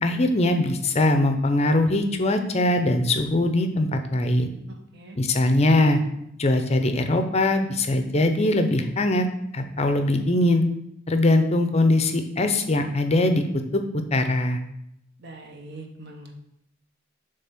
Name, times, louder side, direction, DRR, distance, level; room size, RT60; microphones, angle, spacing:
voice 1, 0.0-4.5 5.2-6.0 6.4-9.3 9.5-10.6 11.1-13.4 13.7-13.8 14.1-14.6, left 1 dB, 30° left, 7 dB, 0.6 m, -21 dB
voice 2, 4.7-5.2 15.2-16.3, right 2 dB, 50° right, 3 dB, 1.1 m, -42 dB
7.0 x 3.4 x 5.8 m, 0.79 s
head